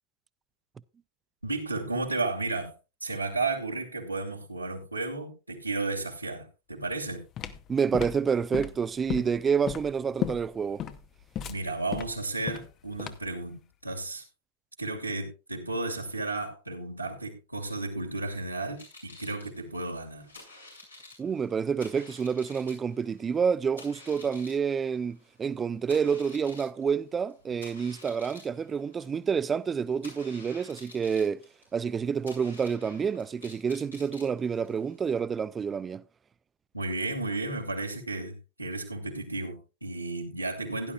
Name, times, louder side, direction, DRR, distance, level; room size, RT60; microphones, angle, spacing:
voice 1, 1.4-2.7 3.0-7.2 11.5-14.2 14.8-20.3 36.7-40.9, right 2 dB, 90° right, 2.8 m, -33 dB
sound 1, 6.9-13.4, left 9 dB, 30° left, 0.9 m, -35 dB
voice 2, 7.7-10.8 21.2-31.4 31.7-36.0, right 6 dB, 20° right, 0.5 m, -28 dB
sound 2, 18.6-35.0, left 2 dB, 90° left, 5.2 m, -51 dB
16.0 x 11.0 x 2.4 m
figure-of-eight pair, 90°, 0 cm